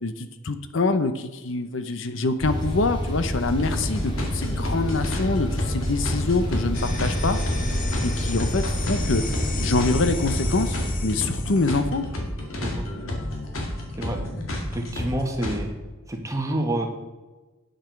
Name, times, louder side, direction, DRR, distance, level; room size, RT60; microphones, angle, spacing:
voice 1, 0.0-7.4 8.0-9.2 9.6-10.8 11.0-12.0, left 3 dB, 65° left, 10 dB, 0.7 m, -25 dB
sound 1, 2.4-10.9, equal, 25° left, 2.1 m, -28 dB
sound 2, 3.4-15.6, left 1 dB, 80° left, 2.1 m, -31 dB
sound 3, 6.7-11.8, left 2 dB, 40° left, 1.5 m, -32 dB
voice 2, 14.7-15.7 16.1-16.9, right 1 dB, 15° right, 3 dB, 1.3 m, -27 dB
9.2 x 7.7 x 5.8 m, 1.2 s
head